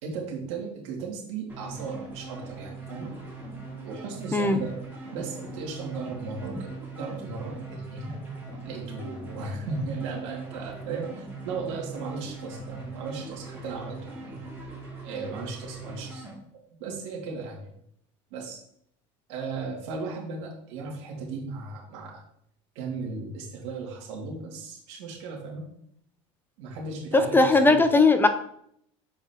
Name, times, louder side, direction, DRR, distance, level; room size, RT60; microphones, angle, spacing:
voice 1, 0.0-3.1 3.8-4.8 5.1-8.1 8.6-14.4 15.0-16.2 16.8-17.7 18.3-18.6 19.3-22.2 22.7-25.6 26.6-27.8, right 4 dB, 80° right, -2 dB, 2.5 m, -36 dB
sound 1, 1.5-16.4, right 3 dB, 15° right, 2.5 m, -41 dB
voice 2, 27.1-28.3, left 3 dB, 15° left, 10 dB, 0.5 m, -19 dB
7.6 x 4.7 x 3.0 m, 0.68 s
supercardioid pair, 120°, 15 cm